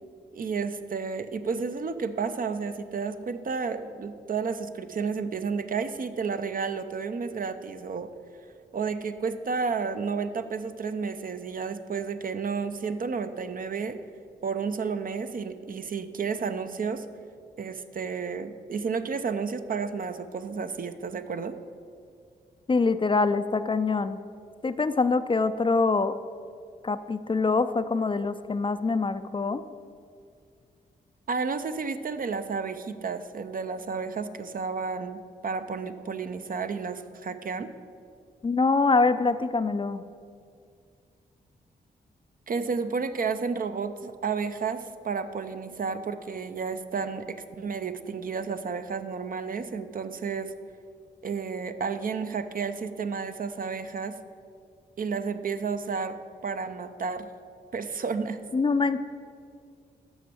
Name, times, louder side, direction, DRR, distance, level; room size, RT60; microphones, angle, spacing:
voice 1, 0.3-8.1 8.7-14.0 14.4-17.1 17.6-21.6 31.3-37.7 42.5-50.5 51.2-54.2 55.0-56.2 56.4-57.3 57.7-58.4, right 5 dB, 50° right, 9 dB, 0.6 m, -31 dB
voice 2, 22.7-24.2 24.6-26.1 26.8-29.6 38.4-40.0 58.5-59.0, left 4 dB, 30° left, 11 dB, 0.4 m, -24 dB
6.2 x 6.0 x 6.9 m, 2.2 s
supercardioid pair, 45°, 18 cm